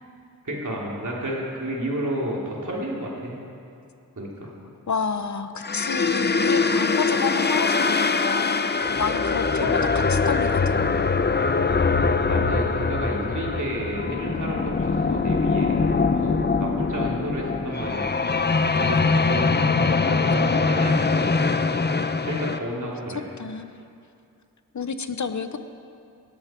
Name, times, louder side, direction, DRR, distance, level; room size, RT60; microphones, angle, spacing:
voice 1, 0.4-3.4 4.2-4.5 9.6-9.7 12.3-15.8 16.1-18.1 18.7-21.3 21.5-21.6 22.2-23.2, right 1 dB, 55° right, -3 dB, 3.2 m, -31 dB
voice 2, 4.9-8.7 9.0-11.1 23.4-23.7 24.7-25.6, left 5 dB, 50° left, 10 dB, 0.9 m, -29 dB
sound 1, 5.6-22.6, left 4 dB, 30° left, 0.6 m, -22 dB
18.0 x 13.0 x 4.5 m, 2.5 s
wide cardioid pair, 65°, 36 cm